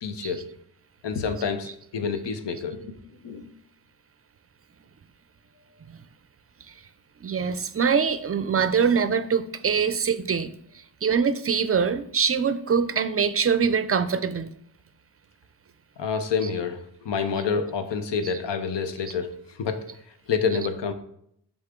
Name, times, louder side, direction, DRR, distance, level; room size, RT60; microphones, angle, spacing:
voice 1, 0.0-0.5 1.0-2.9 3.2-3.4 16.0-19.9 20.3-20.9, left 5 dB, 85° left, 0.7 m, -28 dB
voice 2, 7.2-10.5 11.0-14.5 16.4-16.5 18.2-18.4 19.1-19.2 20.5-20.7, right 6 dB, 35° right, 0.4 m, -24 dB
6.5 x 4.0 x 3.6 m
cardioid pair, 65°, 41 cm